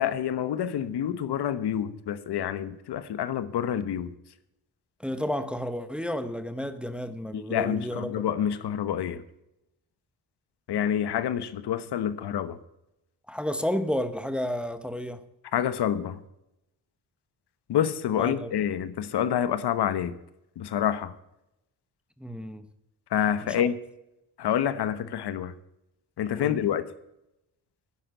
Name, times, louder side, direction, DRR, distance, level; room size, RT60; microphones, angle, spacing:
voice 1, 0.0-4.1 7.3-9.2 10.7-12.6 15.5-16.2 17.7-20.1 20.6-21.1 23.1-23.7 24.4-25.5 26.2-26.8, left 9 dB, 85° left, 1.2 m, -27 dB
voice 2, 5.0-8.1 13.3-15.2 18.2-18.5 22.2-22.6 23.4-23.7 26.4-26.7, equal, 5° right, 0.8 m, -31 dB
11.0 x 9.9 x 7.9 m
wide cardioid pair, 155°, 39 cm